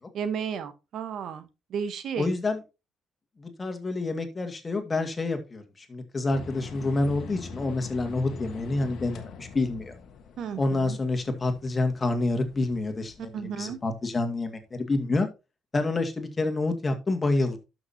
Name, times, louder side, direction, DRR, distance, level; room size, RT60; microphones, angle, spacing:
voice 1, 0.1-1.4 1.7-2.3 10.4-11.0 13.3-13.8, right 7 dB, 65° right, 11 dB, 1.2 m, -33 dB
voice 2, 2.2-2.6 3.4-9.9 10.6-15.3 15.7-17.6, left 2 dB, 30° left, 7 dB, 2.2 m, -28 dB
sound 1, 6.3-14.4, left 4 dB, 65° left, 1.4 m, -44 dB
12.0 x 6.1 x 2.9 m, 0.27 s
supercardioid pair, 60°, 0 cm